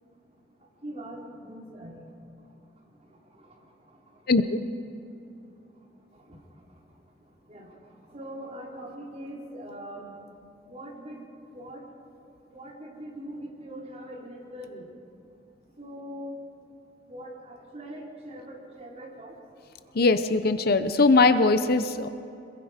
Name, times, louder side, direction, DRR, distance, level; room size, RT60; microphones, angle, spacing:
voice 1, 0.8-2.0 7.5-7.7 8.1-10.1 10.7-11.3 11.5-11.8 12.5-14.8 15.8-16.3 17.1-19.3, right 1 dB, 35° right, -3 dB, 4.1 m, -41 dB
voice 2, 4.3-4.6 20.0-22.1, left 3 dB, 55° left, 11 dB, 0.8 m, -21 dB
27.0 x 21.5 x 5.1 m, 2.7 s
head